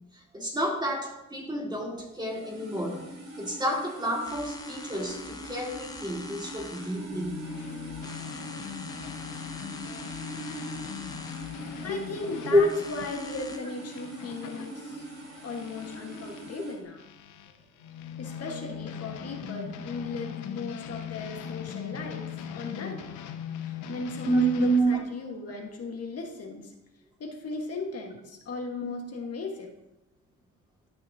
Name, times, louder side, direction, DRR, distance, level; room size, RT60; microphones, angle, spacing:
voice 1, 0.1-3.0 3.4-7.4 11.8-11.9 12.5-12.7 24.2-25.0, right 1 dB, 15° right, -1 dB, 1.9 m, -28 dB
sound 1, 2.1-16.8, right 1 dB, 55° right, 2.3 m, -42 dB
sound 2, 4.2-13.6, left 3 dB, 10° left, 0.8 m, -45 dB
sound 3, 7.1-16.6 17.0-24.8, left 8 dB, 85° left, 0.8 m, -40 dB
voice 2, 11.8-15.1 15.4-17.0 18.2-23.1 23.6-26.7 27.2-29.8, left 3 dB, 55° left, 2 dB, 1.4 m, -37 dB
12.0 x 5.8 x 2.7 m, 0.88 s
cardioid pair, 90°, 30 cm